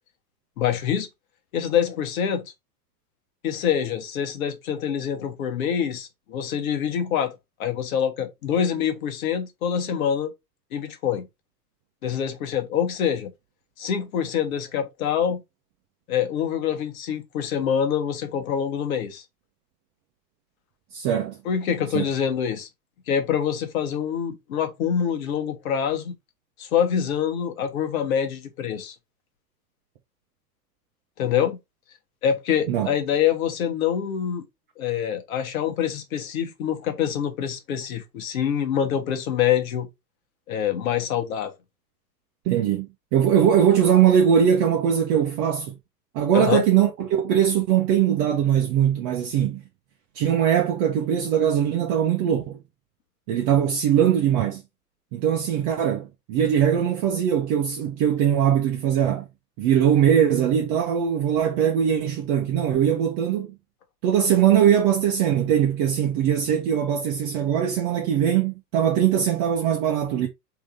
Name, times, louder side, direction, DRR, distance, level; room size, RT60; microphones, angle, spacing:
voice 1, 0.6-1.1 1.5-2.5 3.4-7.3 7.6-10.3 10.7-11.3 12.0-13.3 13.8-15.4 16.1-19.2 21.4-22.7 23.1-26.1 26.6-28.9 31.2-31.6 32.2-34.5 34.8-39.9 40.5-41.5 46.3-46.6, left 8 dB, 55° left, 1.3 m, -25 dB
voice 2, 20.9-21.4 21.9-22.0 32.7-32.9 42.4-42.9 43.1-45.8 46.1-49.6 50.1-52.6 53.3-54.6 55.1-59.3 59.6-63.5 64.0-70.3, right 9 dB, 35° right, 0.9 m, -21 dB
3.7 x 3.0 x 3.5 m
figure-of-eight pair, 100°, 49 cm